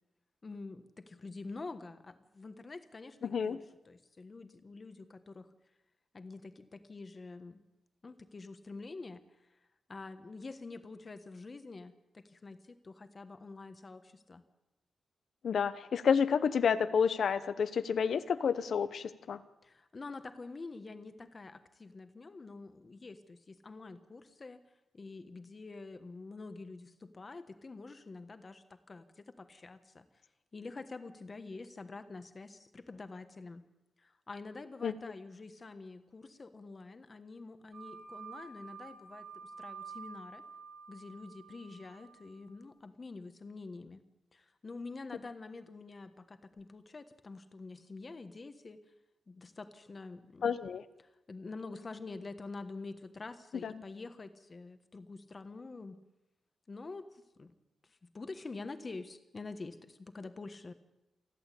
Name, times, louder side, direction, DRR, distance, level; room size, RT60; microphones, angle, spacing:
voice 1, 0.4-5.5 6.1-7.6 8.0-9.5 9.9-14.4 19.6-24.6 24.9-30.1 30.5-33.7 34.0-40.4 40.9-44.0 44.3-48.8 49.3-50.5 51.0-56.0 56.7-57.5 57.8-60.7, left 3 dB, 30° left, 10 dB, 1.3 m, -47 dB
voice 2, 3.2-3.6 15.4-19.4 34.8-34.9 50.4-50.8 53.6-53.8, left 6 dB, 65° left, 13 dB, 1.0 m, -30 dB
sound 1, 37.7-42.6, right 5 dB, 70° right, 3.3 m, -49 dB
28.5 x 11.5 x 8.5 m, 0.96 s
wide cardioid pair, 170°, 0 cm